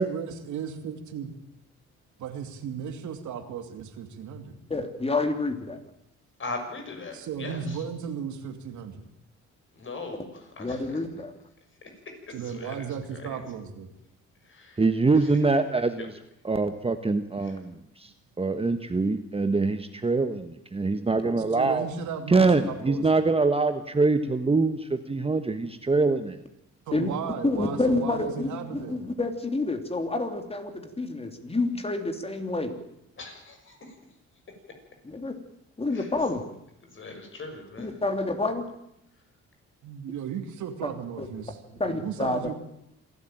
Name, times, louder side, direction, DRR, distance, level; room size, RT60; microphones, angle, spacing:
voice 1, 0.0-1.3 2.2-4.6 7.1-9.1 12.3-13.9 21.5-23.2 26.9-29.0 39.8-42.5, right 7 dB, 75° right, 6 dB, 2.7 m, -35 dB
voice 2, 4.7-5.8 10.6-11.3 26.9-27.1 27.4-32.8 35.0-35.4 35.8-36.4 37.8-38.6 41.2-41.3 41.8-42.4, left 2 dB, 20° left, 6 dB, 3.1 m, -28 dB
voice 3, 6.4-7.6 9.8-11.0 12.3-12.8 13.1-13.4 14.5-14.8 16.0-16.1 33.2-33.8 35.9-36.0 36.9-37.9, left 3 dB, 40° left, 4 dB, 6.4 m, -39 dB
voice 4, 14.8-16.1 16.4-21.8 22.3-26.4, right 3 dB, 20° right, 8 dB, 1.3 m, -24 dB
26.5 x 12.5 x 9.0 m, 0.81 s
cardioid pair, 90°, 29 cm